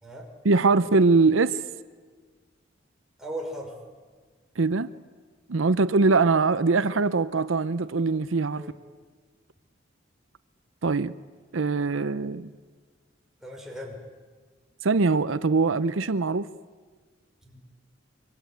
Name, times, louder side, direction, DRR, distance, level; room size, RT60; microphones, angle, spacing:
voice 1, 0.4-1.6 4.6-4.9 5.5-8.6 10.8-11.1 11.5-12.5 14.8-16.5, right 3 dB, 90° right, 0.7 m, -22 dB
voice 2, 3.2-3.7 8.6-8.7 13.4-14.0 17.4-17.6, equal, 5° right, 5.4 m, -37 dB
24.5 x 24.0 x 9.3 m
head